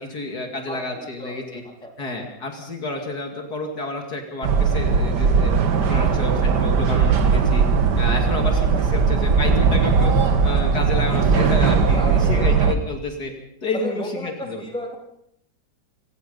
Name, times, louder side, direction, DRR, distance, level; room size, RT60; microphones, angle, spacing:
voice 1, 0.0-1.6 2.0-5.5 5.8-7.6 7.9-13.3 13.6-14.6, left 2 dB, 55° left, 3 dB, 3.1 m, -30 dB
voice 2, 0.7-1.9 5.9-6.3 8.6-9.1 11.9-12.6 13.7-15.0, left 1 dB, 5° left, 1 dB, 3.6 m, -34 dB
sound 1, 4.4-12.8, right 5 dB, 65° right, 1.9 m, -18 dB
25.5 x 18.5 x 5.5 m, 0.74 s
omnidirectional pair, 2.0 m